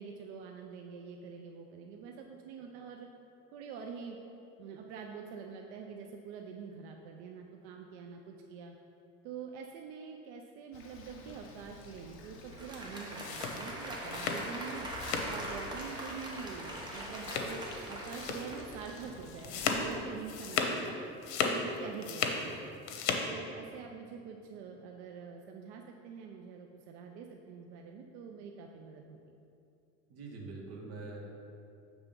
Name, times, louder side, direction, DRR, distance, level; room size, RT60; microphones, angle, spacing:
voice 1, 0.0-3.1 3.5-4.2 4.6-8.8 9.2-14.9 15.3-21.0 21.4-22.7 23.2-29.2, right 6 dB, 80° right, 2 dB, 0.6 m, -46 dB
Bird, 10.7-20.0, left 2 dB, 40° left, 0.8 m, -51 dB
Applause, 12.4-19.4, right 1 dB, 15° right, 0.8 m, -42 dB
sound 1, 13.0-15.4 15.7-16.1 16.4-16.5 17.2-17.8 18.1-18.5 18.9-20.9 21.1-22.4 22.7-23.3, left 5 dB, 90° left, 0.8 m, -35 dB
voice 2, 30.1-31.4, right 3 dB, 45° right, -1 dB, 1.2 m, -44 dB
7.1 x 3.4 x 5.2 m, 2.6 s
cardioid pair, 145°, 33 cm